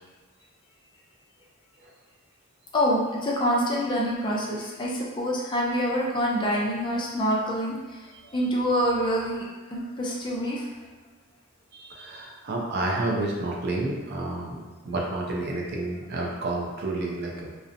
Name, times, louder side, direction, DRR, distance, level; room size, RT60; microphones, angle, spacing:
voice 1, 2.7-7.8 8.3-10.6, equal, 20° left, -4 dB, 0.4 m, -26 dB
voice 2, 11.7-17.5, right 2 dB, 50° right, -2 dB, 0.4 m, -30 dB
2.7 x 2.0 x 2.5 m, 1.4 s
head